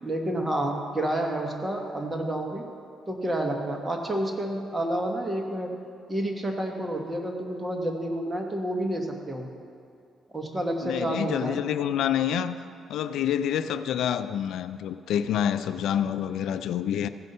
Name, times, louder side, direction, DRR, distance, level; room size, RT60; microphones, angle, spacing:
voice 1, 0.0-2.6 3.1-5.7 6.1-9.5 10.3-11.6, right 1 dB, 20° right, 2 dB, 1.4 m, -29 dB
voice 2, 10.8-12.6 12.9-17.1, left 9 dB, 75° left, 12 dB, 0.3 m, -27 dB
15.0 x 5.4 x 5.5 m, 2.4 s
cardioid pair, 90°, 0 cm